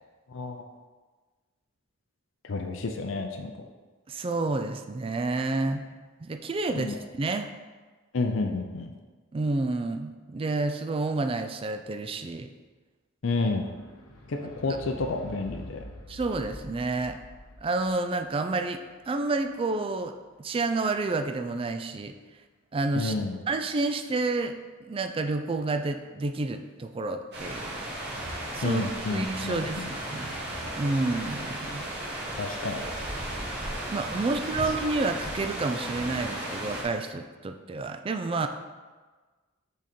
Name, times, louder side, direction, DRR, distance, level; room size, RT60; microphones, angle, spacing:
voice 1, 0.3-0.6 2.4-3.5 6.7-7.0 8.1-8.9 13.2-13.7 14.3-15.8 22.9-23.4 28.6-29.9 32.4-32.8, left 3 dB, 60° left, 4 dB, 0.5 m, -30 dB
voice 2, 4.1-5.9 6.2-7.5 9.3-12.5 16.1-17.2 17.6-20.1 20.4-22.1 22.7-23.1 23.5-24.5 24.9-27.8 28.5-30.4 30.8-31.9 33.9-38.5, right 3 dB, 25° right, 7 dB, 0.3 m, -29 dB
sound 1, 13.6-20.1 20.9-21.0, left 1 dB, 80° left, 0.8 m, -46 dB
sound 2, 27.3-36.8, right 1 dB, 50° right, 1.4 m, -35 dB
6.1 x 4.0 x 4.3 m, 1.3 s
head